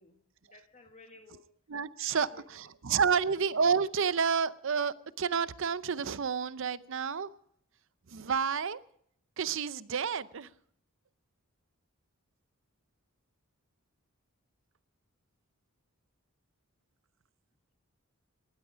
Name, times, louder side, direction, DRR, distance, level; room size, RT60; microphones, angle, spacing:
voice 1, 0.0-1.5 2.0-2.5 2.9-3.2, left 3 dB, 30° left, 1.5 m, -56 dB
voice 2, 1.7-2.3 2.6-7.3 8.1-8.8 9.4-10.5, right 6 dB, 60° right, 0.6 m, -30 dB
19.0 x 13.0 x 5.0 m
head